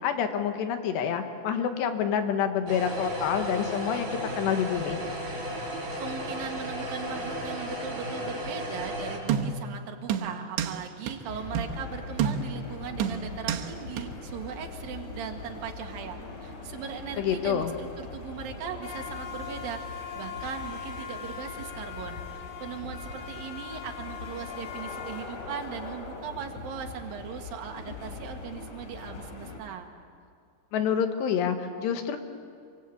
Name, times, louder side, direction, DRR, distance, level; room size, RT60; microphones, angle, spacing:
voice 1, 0.0-5.0 17.2-17.7 30.7-32.2, left 8 dB, 75° left, 7 dB, 3.5 m, -27 dB
sound 1, 2.7-9.2, equal, 25° right, 5.1 m, -34 dB
voice 2, 5.5-19.8 20.1-29.9, right 7 dB, 60° right, 4 dB, 3.2 m, -39 dB
sound 2, 9.3-9.7 10.1-10.8 11.1-11.2 11.5-11.8 12.2-12.6 13.0-13.7 14.0-14.1, right 8 dB, 80° right, 3.5 m, -29 dB
sound 3, 11.3-29.6, left 5 dB, 45° left, 3.9 m, -40 dB
27.5 x 25.0 x 8.4 m, 2.3 s
omnidirectional pair, 5.0 m